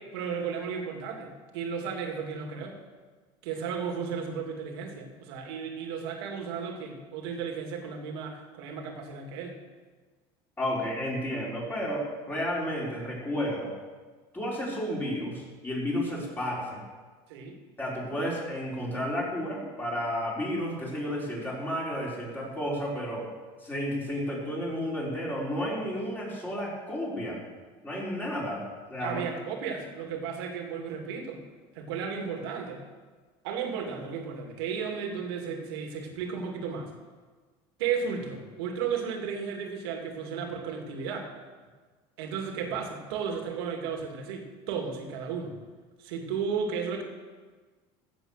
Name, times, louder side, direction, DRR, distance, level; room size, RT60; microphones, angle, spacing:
voice 1, 0.1-2.8 3.4-9.6 16.1-16.2 17.3-17.6 29.0-31.4 31.7-32.8 33.4-36.9 37.8-41.3 42.2-45.5 46.0-47.0, right 6 dB, 85° right, 3 dB, 2.3 m, -34 dB
voice 2, 10.6-13.7 14.3-16.8 17.8-23.3 23.6-27.4 27.8-28.6 28.9-29.2, equal, 15° left, -4 dB, 4.6 m, -32 dB
15.0 x 7.8 x 6.5 m, 1.4 s
supercardioid pair, 125°, 13 cm